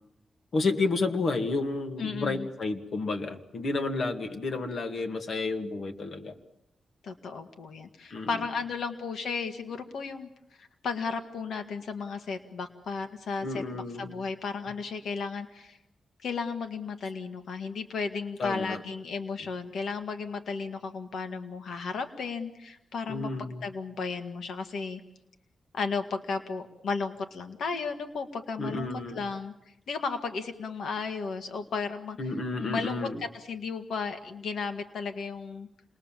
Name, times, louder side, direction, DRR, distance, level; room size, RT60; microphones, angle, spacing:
voice 1, 0.5-6.4 8.1-8.3 13.4-14.2 18.4-18.8 23.1-23.6 28.6-29.2 32.2-33.2, left 3 dB, 55° left, 5 dB, 2.1 m, -31 dB
voice 2, 2.0-2.5 7.0-10.3 10.6-15.8 16.2-23.3 23.6-25.0 25.7-28.9 29.1-29.5 29.9-35.7, left 5 dB, 80° left, 7 dB, 1.8 m, -34 dB
29.5 x 21.0 x 7.4 m, 0.85 s
wide cardioid pair, 170°, 0 cm